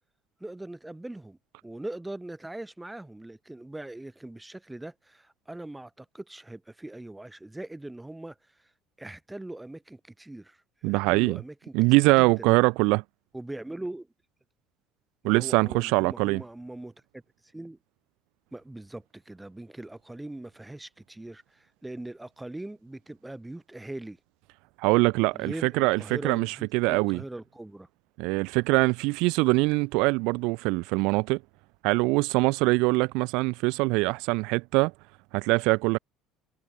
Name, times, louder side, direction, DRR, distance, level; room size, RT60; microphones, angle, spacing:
voice 1, 0.4-8.7 9.0-12.5 13.3-14.1 15.2-17.2 17.5-17.8 18.5-24.2 25.3-27.9, right 1 dB, 5° right, 7.1 m, -41 dB
voice 2, 10.8-11.4 11.7-13.0 15.2-16.4 24.8-27.2 28.2-31.4 31.8-34.9 35.3-36.0, right 26 dB, 75° right, 0.8 m, -23 dB
cardioid pair, 155°, 0 cm